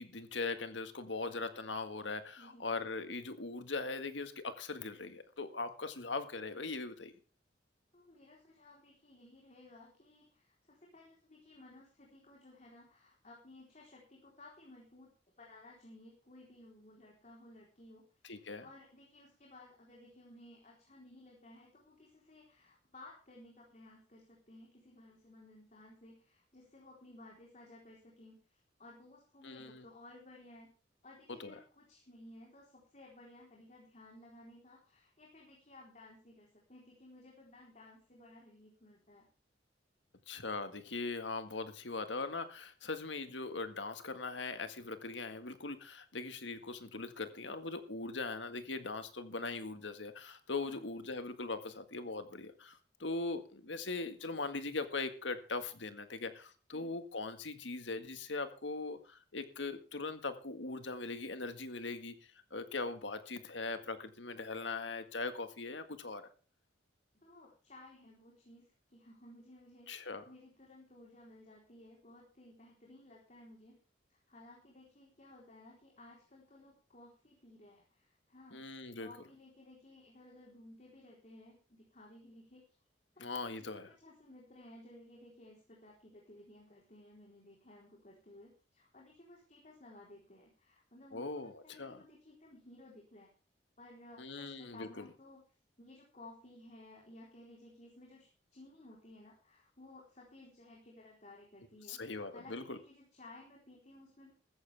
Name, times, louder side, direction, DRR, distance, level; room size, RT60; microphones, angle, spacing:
voice 1, 0.0-7.1 18.2-18.7 29.4-29.8 31.4-31.5 40.3-62.1 62.5-66.2 69.9-70.2 78.5-79.1 83.2-83.9 91.1-92.0 94.2-95.1 101.9-102.8, left 3 dB, 80° left, 9 dB, 1.8 m, -40 dB
voice 2, 2.4-2.7 7.9-15.1 15.4-18.1 18.4-30.7 31.0-39.3 50.6-50.8 56.7-57.0 67.1-69.9 70.3-73.8 74.1-78.6 79.0-82.8 83.2-83.3 83.6-93.3 93.8-95.4 95.8-104.3, left 1 dB, 40° left, -2 dB, 4.0 m, -57 dB
14.5 x 14.5 x 3.5 m, 0.36 s
head